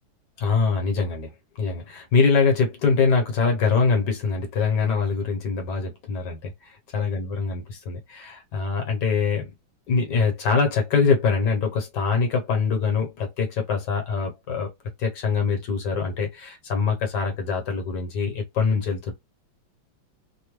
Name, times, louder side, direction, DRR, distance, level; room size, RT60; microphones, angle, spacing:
voice 1, 0.4-1.3 1.6-9.5 9.9-14.7 15.0-19.1, left 5 dB, 65° left, 1.4 m, -24 dB
3.4 x 2.2 x 3.0 m
omnidirectional pair, 2.2 m